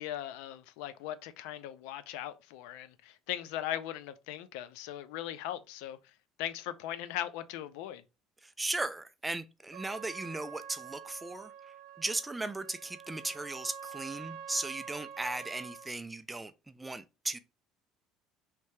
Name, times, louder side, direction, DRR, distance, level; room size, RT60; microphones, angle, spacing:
voice 1, 0.0-6.0 6.4-8.0, left 12 dB, 90° left, 0.3 m, -39 dB
voice 2, 8.4-17.4, right 2 dB, 10° right, 0.3 m, -37 dB
Trumpet, 9.7-15.9, right 8 dB, 60° right, 0.5 m, -47 dB
3.3 x 2.7 x 3.1 m
cardioid pair, 140°, 0 cm